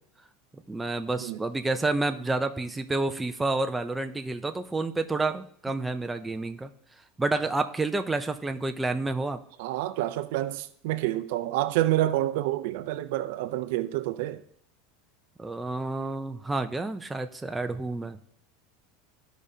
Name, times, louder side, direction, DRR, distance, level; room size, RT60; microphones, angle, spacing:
voice 1, 0.5-6.7 7.2-9.4 15.4-18.2, right 2 dB, 10° right, 0.5 m, -29 dB
voice 2, 9.6-14.4, right 15 dB, 70° right, 0.5 m, -28 dB
14.0 x 5.0 x 2.8 m
supercardioid pair, 135°, 0 cm